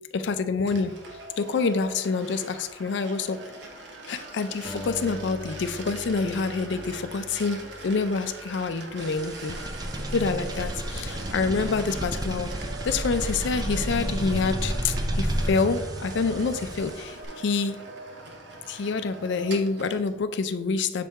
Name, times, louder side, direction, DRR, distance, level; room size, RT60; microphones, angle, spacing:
voice 1, 0.1-1.0 1.4-3.5 4.1-9.6 10.1-17.8 18.7-21.1, left 4 dB, 65° left, 10 dB, 0.4 m, -27 dB
sound 1, 0.7-20.1, right 2 dB, 60° right, 0.9 m, -42 dB
Acoustic guitar, 4.6-9.1, left 2 dB, 25° left, 0.9 m, -42 dB
sound 2, 9.0-17.3, right 1 dB, 20° right, 0.4 m, -31 dB
6.6 x 4.1 x 3.5 m, 1.1 s
head